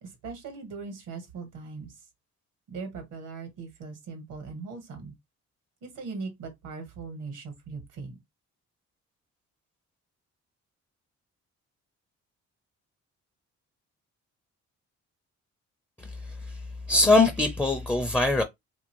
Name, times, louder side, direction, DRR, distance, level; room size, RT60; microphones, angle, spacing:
voice 1, 0.0-1.9 2.7-5.1 5.8-8.2, right 4 dB, 85° right, 1.3 m, -39 dB
voice 2, 16.9-18.4, left 2 dB, 5° left, 0.5 m, -21 dB
2.8 x 2.6 x 3.0 m
cardioid pair, 90°, 30 cm